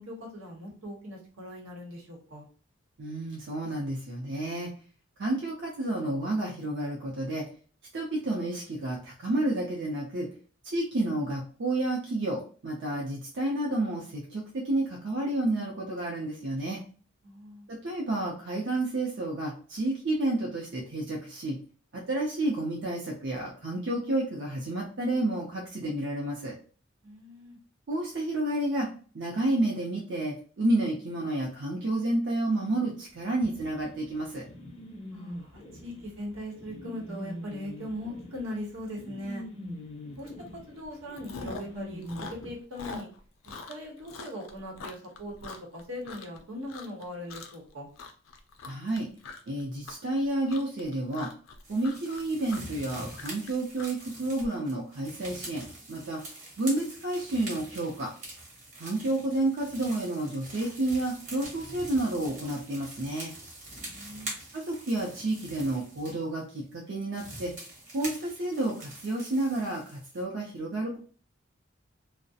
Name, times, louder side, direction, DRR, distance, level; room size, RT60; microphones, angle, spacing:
voice 1, 0.0-2.5 17.2-17.7 27.0-27.6 35.1-39.4 40.2-40.3 40.7-42.0 42.3-43.1 43.4-47.9 63.8-64.3, left 1 dB, 85° right, -1 dB, 0.9 m, -40 dB
voice 2, 3.0-4.7 5.2-7.5 7.9-10.3 10.6-16.8 17.7-21.6 21.9-26.5 27.9-28.9 29.1-34.4 48.7-49.1 49.5-51.3 51.7-56.2 56.6-58.1 58.8-63.3 64.5-67.5 67.9-71.0, right 1 dB, 60° right, -2 dB, 0.5 m, -30 dB
sound 1, 33.4-42.5, left 1 dB, 25° left, 0.5 m, -43 dB
Chewing mastication, 40.3-40.5 40.8-41.8 42.0-46.4 46.7-47.0 47.3-47.7 47.9-54.5, left 4 dB, 90° left, 0.4 m, -43 dB
sound 2, 51.6-66.2 66.7-66.8 67.1-70.2, right 1 dB, 40° right, 0.8 m, -44 dB
2.3 x 2.0 x 2.6 m, 0.40 s
head